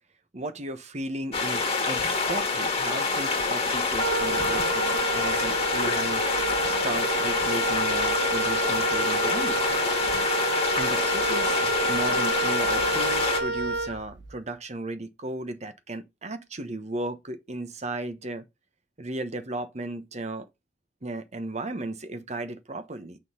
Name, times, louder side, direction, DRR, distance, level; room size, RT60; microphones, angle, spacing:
voice 1, 0.3-6.2 6.6-9.8 10.7-11.6 11.9-18.5 19.0-20.5 21.0-23.2, right 2 dB, 40° right, 1.0 m, -35 dB
sound 1, 1.3-13.4, left 4 dB, 35° left, 2.1 m, -26 dB
Wind instrument woodwind instrument, 4.0-14.4, right 2 dB, 70° right, 1.2 m, -29 dB
9.0 x 3.9 x 5.4 m
head